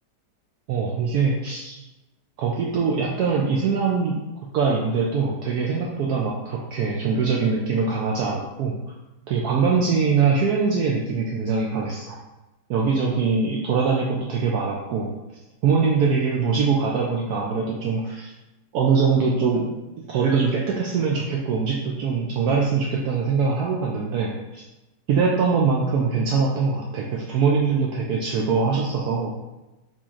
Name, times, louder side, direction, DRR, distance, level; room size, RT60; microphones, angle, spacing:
voice 1, 0.7-1.7 2.4-4.2 4.5-8.7 9.3-12.2 12.7-15.1 15.6-18.3 18.7-19.7 20.1-24.6 25.1-29.3, right 5 dB, 70° right, -2 dB, 1.0 m, -22 dB
4.2 x 3.0 x 3.6 m, 1.0 s
omnidirectional pair, 1.8 m